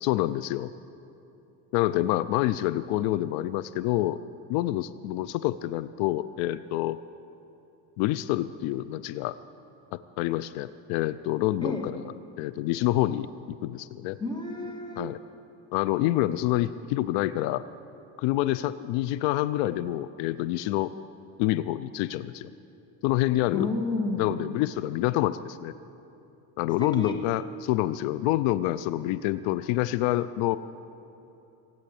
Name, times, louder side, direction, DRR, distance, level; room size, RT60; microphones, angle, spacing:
voice 1, 0.0-0.7 1.7-4.2 4.5-7.0 8.0-9.4 10.2-12.0 12.4-14.2 15.0-15.2 15.7-17.6 18.2-20.9 21.4-22.5 23.0-23.7 24.2-25.7 26.6-30.6, left 15 dB, 85° left, 15 dB, 0.6 m, -27 dB
voice 2, 14.2-15.1 23.5-24.4 26.8-27.1, left 2 dB, 10° left, 1 dB, 2.4 m, -31 dB
17.5 x 9.1 x 8.5 m, 2.9 s
supercardioid pair, 100°, 43 cm